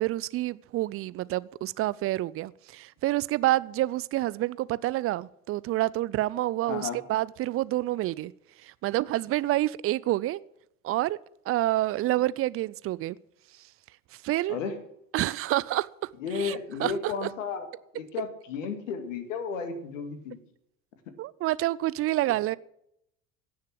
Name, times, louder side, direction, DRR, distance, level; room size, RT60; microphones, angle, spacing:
voice 1, 0.0-8.3 8.6-10.4 10.8-11.2 11.5-13.2 14.2-14.6 15.1-17.3 21.2-22.6, right 16 dB, 35° right, 0.5 m, -28 dB
voice 2, 6.7-7.0 14.5-14.8 16.2-17.7 17.9-20.4, left 5 dB, 70° left, 2.2 m, -33 dB
17.0 x 6.6 x 7.7 m
figure-of-eight pair, 65°, 40 cm